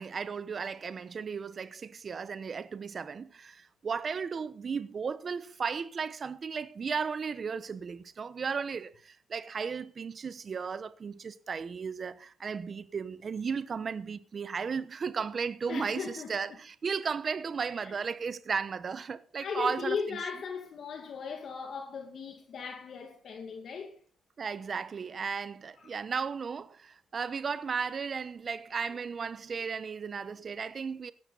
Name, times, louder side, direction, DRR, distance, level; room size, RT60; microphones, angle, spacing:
voice 1, 0.0-20.2 24.4-31.1, right 5 dB, 45° right, 1.0 m, -35 dB
voice 2, 15.7-16.3 17.7-17.9 19.4-24.0 25.8-25.9, left 5 dB, 60° left, 2.2 m, -37 dB
16.5 x 13.0 x 4.1 m
cardioid pair, 100°, 0 cm